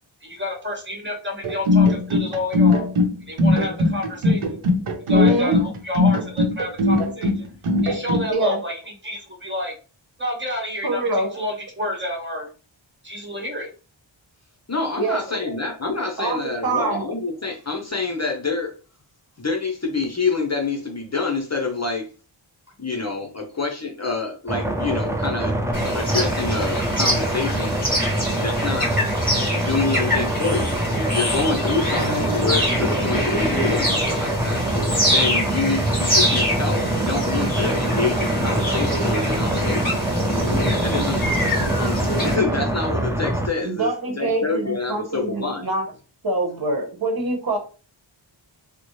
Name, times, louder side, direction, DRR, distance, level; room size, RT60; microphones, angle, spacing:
voice 1, 0.2-2.9 3.3-4.4 5.1-7.5 7.8-9.7 10.2-12.5 13.0-13.7 15.3-15.5, left 1 dB, 25° right, 1 dB, 1.2 m, -30 dB
sound 1, 1.4-8.3, left 2 dB, 90° right, 0.8 m, -19 dB
voice 2, 5.1-5.6 8.3-8.6 10.8-11.4 15.0-15.2 16.2-17.0 43.6-45.8 46.2-47.6, right 2 dB, 50° right, 1 dB, 1.1 m, -24 dB
voice 3, 14.7-18.7 19.4-22.1 22.8-25.6 25.9-27.8 28.4-28.9 29.5-34.6 35.1-40.0 40.8-41.2 41.8-45.7, left 4 dB, 35° left, 3 dB, 0.7 m, -27 dB
sound 2, 24.5-43.5, right 1 dB, 5° right, 0.5 m, -25 dB
sound 3, 25.7-42.3, equal, 20° left, 1.9 m, -25 dB
4.0 x 2.1 x 3.1 m, 0.35 s
wide cardioid pair, 85°, 48 cm